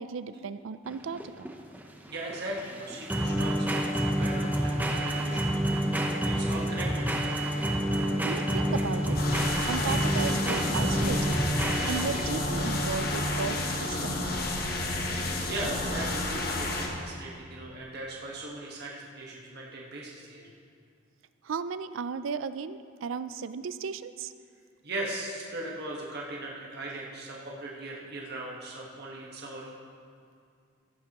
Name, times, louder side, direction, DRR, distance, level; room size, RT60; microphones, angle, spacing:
voice 1, 0.0-1.5 8.2-9.2 9.7-11.3 11.9-14.2 21.4-24.3, right 5 dB, 75° right, 13 dB, 0.4 m, -35 dB
sound 1, 0.9-12.5, right 1 dB, 10° right, 0.6 m, -30 dB
voice 2, 2.1-7.2 15.0-20.4 24.8-29.7, right 2 dB, 55° right, -3 dB, 1.3 m, -39 dB
Bowed string instrument, 3.1-14.3, equal, 30° left, 2.1 m, -33 dB
sound 2, 9.1-16.9, left 2 dB, 50° left, 1.2 m, -31 dB
15.0 x 10.5 x 3.0 m, 2.3 s
head